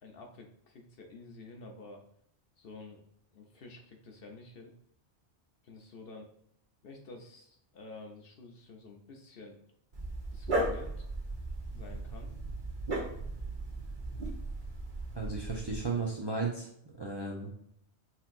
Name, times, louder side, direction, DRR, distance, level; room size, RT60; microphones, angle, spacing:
voice 1, 0.0-2.0 2.6-3.0 3.3-4.7 5.6-6.3 6.8-9.6 10.3-11.1 11.7-12.3, left 3 dB, 60° left, 2 dB, 0.9 m, -50 dB
Dog, 9.9-15.8, right 2 dB, 45° right, 1.0 m, -36 dB
voice 2, 15.1-16.7 17.0-17.5, right 4 dB, 30° right, -2 dB, 0.5 m, -34 dB
5.8 x 2.9 x 2.5 m, 0.69 s
omnidirectional pair, 1.2 m